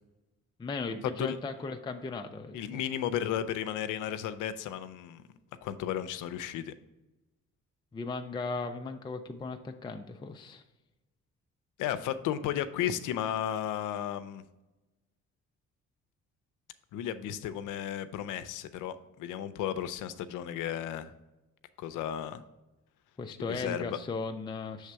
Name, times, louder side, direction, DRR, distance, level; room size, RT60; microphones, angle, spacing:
voice 1, 0.6-2.8 7.9-10.6 23.2-24.9, left 4 dB, 15° left, 5 dB, 0.4 m, -37 dB
voice 2, 2.5-5.2 5.6-6.7 11.8-14.4 16.9-21.1 21.8-22.4 23.5-24.0, left 10 dB, 85° left, 13 dB, 0.5 m, -34 dB
6.4 x 3.4 x 4.5 m, 1.0 s
cardioid pair, 90°, 30 cm